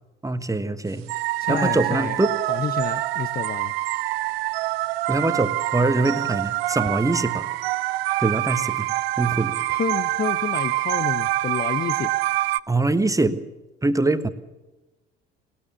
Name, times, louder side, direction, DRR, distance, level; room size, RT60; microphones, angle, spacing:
voice 1, 0.2-1.1 1.5-2.4 5.1-7.5 8.2-8.9 9.2-9.6 12.7-13.4 13.8-14.3, right 2 dB, 10° right, 11 dB, 1.4 m, -23 dB
sound 1, 1.1-12.6, right 18 dB, 65° right, 0.6 m, -26 dB
voice 2, 1.4-2.2 2.5-3.7 9.7-12.1, left 7 dB, 30° left, 14 dB, 0.8 m, -29 dB
19.5 x 19.0 x 7.1 m, 1.1 s
figure-of-eight pair, 55°, 32 cm